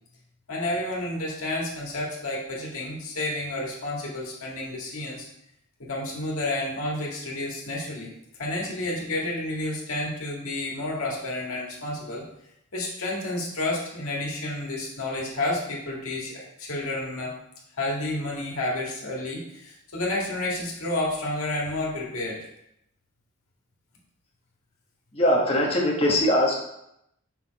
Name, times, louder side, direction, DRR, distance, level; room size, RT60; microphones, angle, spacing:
voice 1, 0.5-5.3 5.8-8.1 8.4-12.2 12.7-17.3 17.8-22.4, left 2 dB, 80° left, -3 dB, 1.7 m, -30 dB
voice 2, 25.1-26.5, left 1 dB, 25° left, -2 dB, 1.2 m, -21 dB
5.8 x 4.2 x 4.0 m, 0.80 s
head